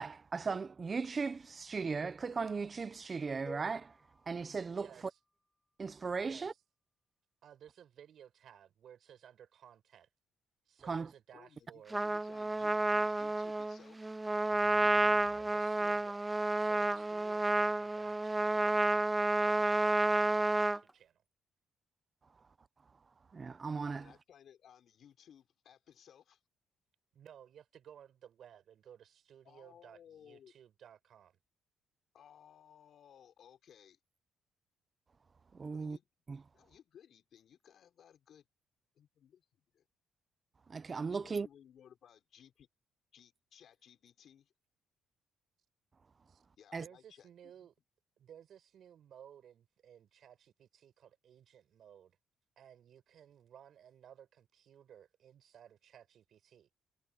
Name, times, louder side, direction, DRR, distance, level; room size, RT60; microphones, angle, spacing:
voice 1, 0.0-3.9 4.3-4.9 5.8-6.5 10.9-11.1 14.8-14.9 23.3-24.1 35.5-36.0 36.3-36.4 40.7-41.5 46.7-46.8, right 4 dB, 35° right, 0.8 m, -37 dB
sound 1, 3.5-5.5, equal, 5° left, 1.7 m, -54 dB
voice 2, 4.7-5.2 6.2-6.6 7.4-10.1 10.7-12.0 15.2-16.2 16.5-19.1 19.3-21.2 27.1-31.4 46.3-46.4 46.8-47.7 48.2-52.2 52.6-56.7, right 9 dB, 65° right, 4.9 m, -58 dB
voice 3, 11.3-14.2 23.9-26.4 29.4-30.5 32.1-34.0 35.7-36.1 36.5-38.5 39.0-39.5 39.7-39.8 41.2-42.7 43.1-44.5 46.6-47.7, left 9 dB, 65° left, 5.1 m, -60 dB
Trumpet, 11.9-20.8, right 2 dB, 15° right, 0.3 m, -30 dB
cardioid pair, 90°, 0 cm